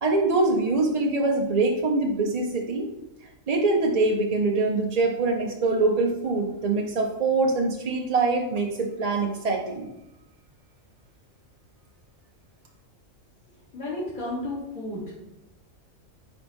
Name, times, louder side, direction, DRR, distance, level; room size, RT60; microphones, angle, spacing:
voice 1, 0.0-2.9 3.5-9.9, right 3 dB, 40° right, 0 dB, 0.6 m, -24 dB
voice 2, 13.7-15.0, left 1 dB, 40° left, -9 dB, 2.5 m, -32 dB
9.9 x 4.1 x 3.5 m, 0.91 s
omnidirectional pair, 1.4 m